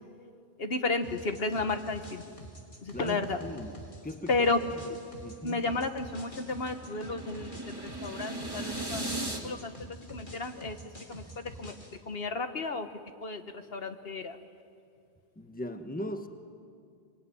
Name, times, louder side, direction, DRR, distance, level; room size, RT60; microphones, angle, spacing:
voice 1, 0.6-2.2 2.8-3.4 4.3-4.6 4.9-5.0 5.4-7.8 8.0-9.0 9.4-10.8 11.1-11.7 12.1-12.9 13.2-13.4 13.7-14.4, left 3 dB, 65° left, 8 dB, 1.5 m, -32 dB
sound 1, 1.0-12.0, right 1 dB, 50° left, 3.0 m, -47 dB
voice 2, 2.9-3.8 4.0-4.3 5.2-5.6 15.4-16.3, left 1 dB, 10° left, 7 dB, 1.3 m, -38 dB
sound 2, 5.1-9.4, right 1 dB, 20° right, 2.9 m, -38 dB
23.5 x 23.0 x 10.0 m, 2.3 s
omnidirectional pair, 1.1 m